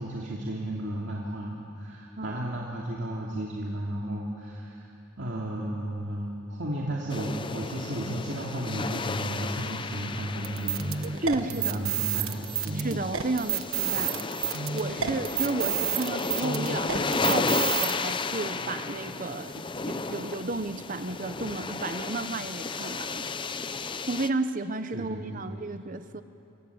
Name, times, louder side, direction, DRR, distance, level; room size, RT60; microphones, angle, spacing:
voice 1, 0.0-12.3 12.6-12.8 13.9-14.1 15.0-15.2 24.9-25.4, right 1 dB, 55° right, -3 dB, 2.7 m, -34 dB
sound 1, 7.1-24.3, left 3 dB, 25° left, 0.6 m, -33 dB
sound 2, 10.4-17.9, right 9 dB, 75° right, 1.2 m, -30 dB
voice 2, 11.2-11.8 12.7-14.2 14.7-23.3 24.1-26.2, right 2 dB, 40° right, 10 dB, 0.9 m, -32 dB
27.5 x 24.5 x 8.6 m, 2.8 s
head